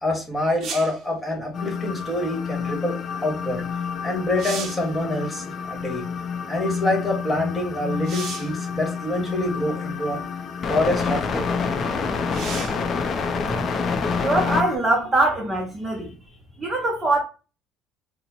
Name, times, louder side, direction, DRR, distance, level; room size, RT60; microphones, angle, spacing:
voice 1, 0.0-3.6 4.0-6.0 6.5-10.2 10.7-11.5, left 1 dB, 10° left, 1.3 m, -26 dB
sound 1, 0.6-1.0 3.7-3.8 4.2-4.9 8.0-8.6 9.6-9.7 12.3-12.9 16.5-16.6, right 6 dB, 50° right, 0.6 m, -35 dB
sound 2, 1.5-14.8, left 5 dB, 40° left, 0.5 m, -28 dB
voice 2, 14.2-16.1 16.6-17.2, right 2 dB, 20° right, 0.7 m, -22 dB
4.1 x 2.1 x 2.9 m
cardioid pair, 125°, 0 cm